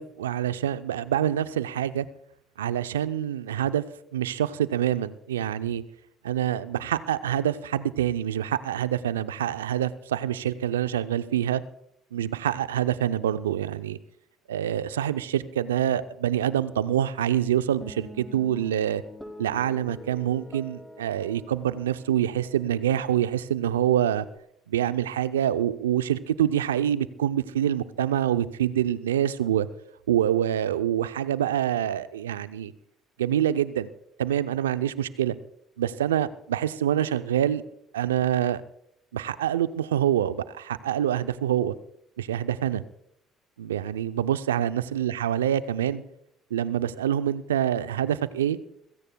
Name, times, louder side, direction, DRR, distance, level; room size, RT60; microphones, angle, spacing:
voice 1, 0.0-2.1 2.6-3.8 4.1-5.8 6.2-11.6 12.1-14.0 14.5-19.0 19.4-24.3 24.7-29.7 30.1-32.7 33.2-33.9 34.2-35.4 35.8-37.6 37.9-38.6 39.1-41.8 42.2-42.8 43.6-46.0 46.5-48.6, right 10 dB, 85° right, 14 dB, 0.5 m, -26 dB
Guitar, 17.8-24.4, equal, ahead, 5.3 m, -47 dB
27.5 x 16.5 x 2.3 m, 0.76 s
hypercardioid pair, 60°, 0 cm